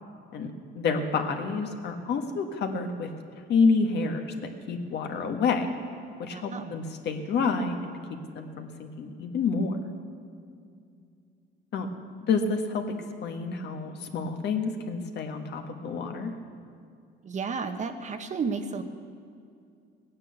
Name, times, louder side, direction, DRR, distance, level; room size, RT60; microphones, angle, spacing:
voice 1, 0.3-3.1 3.5-4.3 4.7-5.7 6.2-9.8 11.7-11.9 12.2-12.9 13.2-16.3, left 4 dB, 60° left, 4 dB, 1.6 m, -28 dB
voice 2, 6.3-6.8 17.2-18.8, right 5 dB, 40° right, 7 dB, 1.1 m, -32 dB
17.5 x 9.8 x 8.1 m, 2.4 s
cardioid pair, 115°, 20 cm